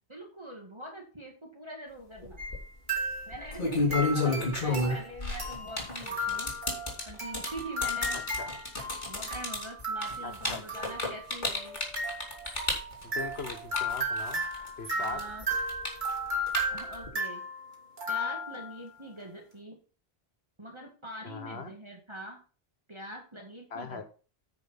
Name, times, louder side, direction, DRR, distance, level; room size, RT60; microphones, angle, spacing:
voice 1, 0.1-2.4 3.3-4.3 4.6-6.5 7.1-8.2 9.0-11.8 14.9-15.5 16.7-17.4 18.1-19.8 20.6-22.4 22.9-24.0, right 1 dB, 25° right, -1 dB, 1.9 m, -44 dB
sound 1, 2.2-2.6 3.3-14.7 15.0-17.1, left 3 dB, 45° left, 3.2 m, -31 dB
sound 2, 2.4-2.6 2.9-3.5 3.9-18.8, right 1 dB, 45° right, 2.6 m, -35 dB
voice 2, 3.8-4.8 8.1-8.5 10.2-10.6 13.1-14.4 14.8-15.2 21.2-21.7 23.7-24.0, left 4 dB, 70° left, 7 dB, 1.5 m, -40 dB
9.6 x 4.9 x 5.6 m, 0.37 s
omnidirectional pair, 1.1 m